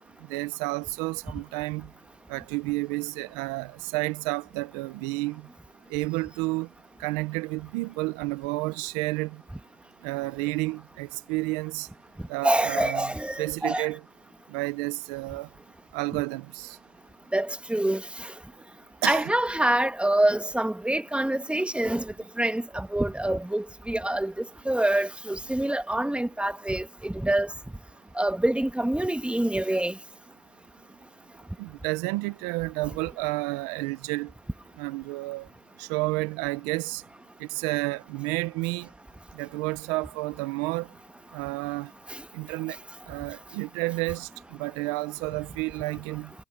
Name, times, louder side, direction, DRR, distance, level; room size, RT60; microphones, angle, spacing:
voice 1, 0.3-1.9 2.3-5.5 5.9-6.7 7.0-9.4 10.0-11.9 12.3-13.1 13.4-14.0 14.5-15.5 15.9-16.8 19.0-19.3 31.6-34.3 34.8-35.5 35.8-37.0 37.4-38.9 39.3-40.9 41.3-41.9 42.3-42.8 43.1-46.3, right 23 dB, 90° right, 0.8 m, -31 dB
voice 2, 12.4-13.9 17.3-18.0 19.0-22.1 22.4-24.3 24.7-27.5 28.2-29.9, right 1 dB, 5° right, 1.9 m, -26 dB
supercardioid pair, 70°, 19 cm